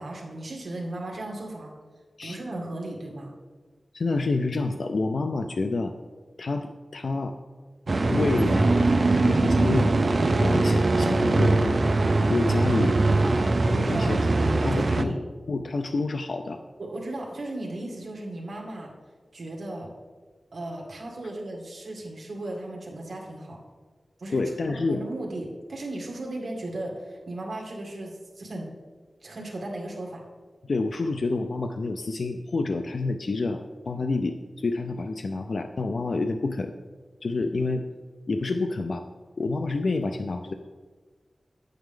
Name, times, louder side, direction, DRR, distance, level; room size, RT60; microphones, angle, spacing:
voice 1, 0.0-1.8 2.2-3.3 13.2-14.3 14.7-15.2 16.8-18.9 19.3-19.9 20.5-23.6 24.2-24.5 24.9-28.7 29.2-30.2, right 1 dB, 75° right, -1 dB, 2.1 m, -36 dB
voice 2, 3.9-5.9 6.4-7.3 8.1-8.8 9.2-9.9 10.4-12.0 12.3-13.0 13.7-14.2 14.6-15.2 15.5-16.6 24.3-25.0 30.6-36.7 37.2-37.8 38.3-39.1 39.4-40.5, left 3 dB, 75° left, 6 dB, 0.5 m, -28 dB
sound 1, 7.9-15.0, right 2 dB, 55° right, 0.5 m, -22 dB
9.9 x 9.2 x 3.7 m, 1.4 s
wide cardioid pair, 95°, 0 cm